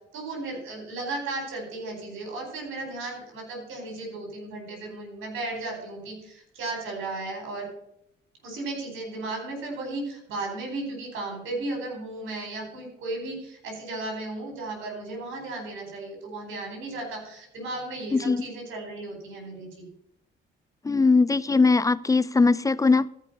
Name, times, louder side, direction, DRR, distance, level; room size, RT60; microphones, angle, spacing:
voice 1, 0.1-7.7 8.4-19.9, right 2 dB, 85° right, 2 dB, 4.4 m, -35 dB
voice 2, 18.1-18.4 20.8-23.1, left 4 dB, 15° left, 18 dB, 0.4 m, -20 dB
14.0 x 5.5 x 5.4 m, 0.76 s
cardioid pair, 90°, 20 cm